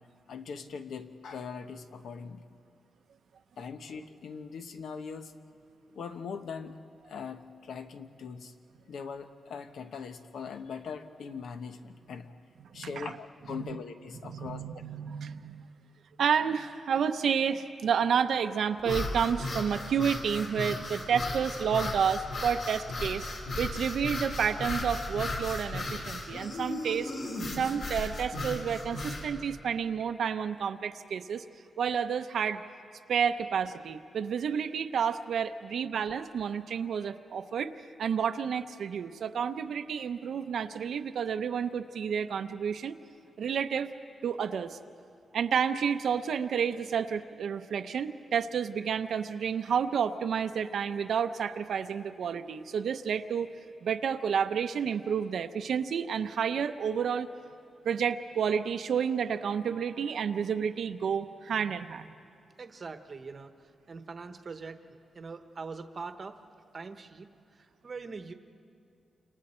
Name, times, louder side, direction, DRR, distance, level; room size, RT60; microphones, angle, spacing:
voice 1, 0.3-2.6 3.6-5.4 5.9-6.8 7.0-8.5 8.9-12.4 12.7-14.6, left 6 dB, 80° left, 7 dB, 1.1 m, -41 dB
voice 2, 12.7-13.1 13.5-13.8 14.3-15.7 16.2-23.3 23.6-27.1 27.5-31.4 31.8-32.6 33.1-37.7 38.0-42.9 43.4-43.9 44.2-44.8 45.3-53.5 53.8-57.3 57.8-62.1, right 7 dB, 70° right, 8 dB, 0.7 m, -30 dB
sound 1, 18.8-29.3, left 2 dB, 60° left, 4.5 m, -35 dB
voice 3, 62.6-66.4 66.7-68.3, right 4 dB, 35° right, 8 dB, 1.0 m, -43 dB
29.5 x 27.0 x 4.4 m, 2.4 s
wide cardioid pair, 165°, 0 cm